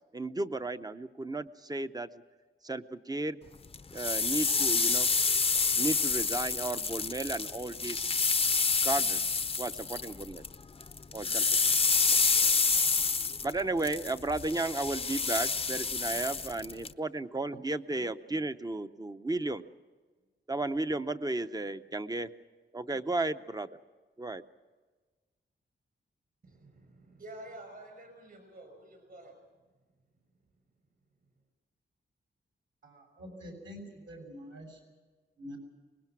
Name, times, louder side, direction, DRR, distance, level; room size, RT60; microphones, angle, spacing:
voice 1, 0.1-2.1 2.6-3.4 3.9-5.1 5.8-8.1 8.8-10.4 11.1-11.7 13.4-19.6 20.5-22.3 22.7-23.7 24.2-24.4, right 2 dB, 20° right, 10 dB, 0.7 m, -34 dB
sound 1, 3.7-10.5 10.8-16.9, left 4 dB, 30° left, 0.6 m, -28 dB
voice 2, 26.4-29.4, right 1 dB, 45° right, 5 dB, 5.6 m, -49 dB
voice 3, 32.8-34.8 35.4-35.6, equal, 70° right, 2 dB, 7.0 m, -46 dB
24.5 x 20.5 x 6.1 m, 1.4 s
wide cardioid pair, 140°, 20 cm